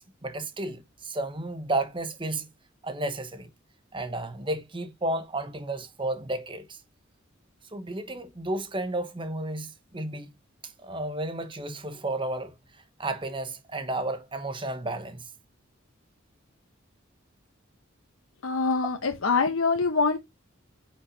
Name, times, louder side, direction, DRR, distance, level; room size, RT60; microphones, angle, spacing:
voice 1, 0.0-2.5 2.8-3.5 3.9-6.8 7.7-10.3 10.6-12.6 13.0-15.3 18.9-19.0, right 2 dB, 25° right, 1.2 m, -32 dB
voice 2, 18.4-20.2, left 4 dB, 80° left, 1.1 m, -24 dB
9.3 x 5.8 x 2.8 m
head